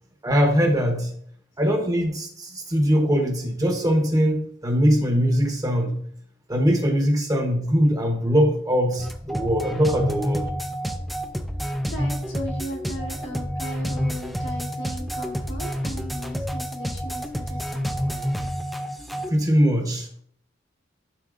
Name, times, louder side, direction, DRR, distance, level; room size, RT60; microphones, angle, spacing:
voice 1, 0.2-1.1 1.6-6.0 6.5-10.5 19.3-20.2, equal, 20° right, 3 dB, 1.0 m, -21 dB
sound 1, 9.0-19.3, equal, ahead, 0.5 m, -29 dB
voice 2, 11.8-18.5, equal, 65° left, 0 dB, 1.6 m, -37 dB
11.5 x 4.2 x 2.5 m, 0.62 s
head